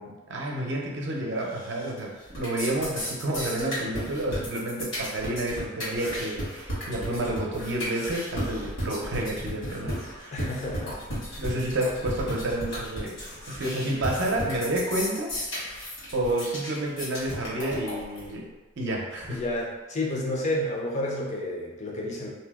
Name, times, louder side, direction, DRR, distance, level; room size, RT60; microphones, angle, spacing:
voice 1, 0.0-10.4 11.4-13.2 13.5-15.3 16.1-18.5 18.8-19.4, right 1 dB, 60° right, -1 dB, 0.6 m, -30 dB
sound 1, 1.5-2.0 2.3-18.3, equal, 75° left, 1.5 m, -34 dB
voice 2, 10.3-11.0 19.3-22.3, left 1 dB, 35° left, -3 dB, 0.5 m, -30 dB
2.7 x 2.0 x 3.4 m, 1.2 s
head